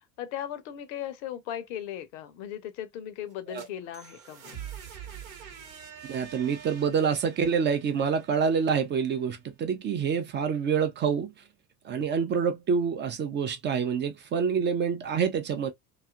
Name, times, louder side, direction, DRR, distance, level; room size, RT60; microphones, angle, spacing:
voice 1, 0.2-4.6, left 11 dB, 55° left, 0.6 m, -37 dB
sound 1, 3.3-9.2, right 8 dB, 75° right, 0.9 m, -45 dB
voice 2, 6.1-11.3 11.8-15.7, right 6 dB, 25° right, 0.4 m, -27 dB
2.7 x 2.4 x 2.3 m
figure-of-eight pair, 65°, 43 cm